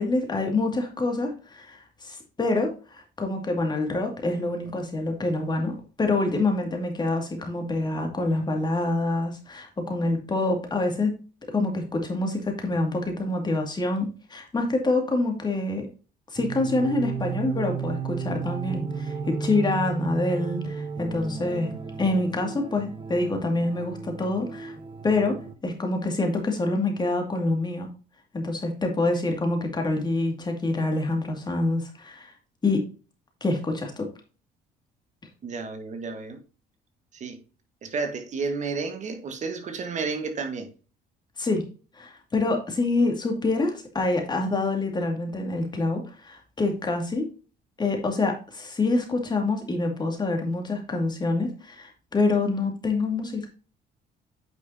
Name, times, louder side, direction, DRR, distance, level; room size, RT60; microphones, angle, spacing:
voice 1, 0.0-11.2 11.5-15.9 16.3-21.7 22.0-24.8 25.0-27.9 28.3-32.3 32.6-32.9 33.4-34.1 41.4-41.7 41.9-47.3 47.8-53.5, left 2 dB, 25° left, 2.3 m, -26 dB
sound 1, 16.4-25.5, right 5 dB, 30° right, 1.0 m, -34 dB
voice 2, 35.4-36.4 37.1-37.4 37.8-40.7, right 4 dB, 45° right, 1.6 m, -31 dB
9.1 x 5.6 x 2.8 m
cardioid pair, 110°, 17 cm